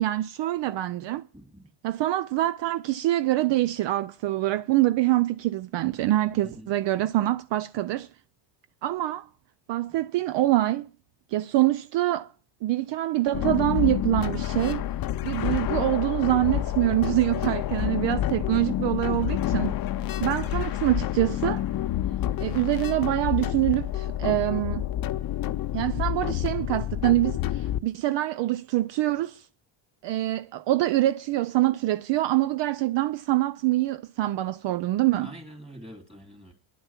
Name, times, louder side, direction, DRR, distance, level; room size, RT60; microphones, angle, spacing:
voice 1, 0.0-1.2 1.8-8.1 8.8-9.3 9.7-10.9 11.3-12.3 12.6-14.9 15.2-19.7 20.2-21.7 22.4-24.9 25.7-29.5 30.0-35.3, right 16 dB, 65° right, 0.5 m, -25 dB
voice 2, 1.3-1.7 6.4-6.7 35.2-36.5, equal, 15° right, 3.2 m, -45 dB
sound 1, 13.3-27.8, left 12 dB, 50° left, 0.6 m, -28 dB
10.5 x 9.0 x 5.9 m
cardioid pair, 145°, 46 cm